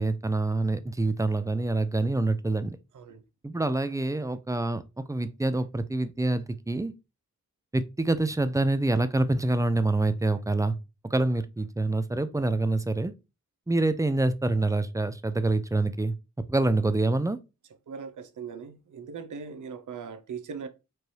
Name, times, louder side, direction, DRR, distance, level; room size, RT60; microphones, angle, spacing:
voice 1, 0.0-2.7 3.4-6.9 7.7-10.7 11.0-13.1 13.7-16.1 16.5-17.4, right 2 dB, 10° right, 0.4 m, -26 dB
voice 2, 17.9-20.7, right 6 dB, 85° right, 0.6 m, -39 dB
4.5 x 2.6 x 3.2 m
wide cardioid pair, 85°, 30 cm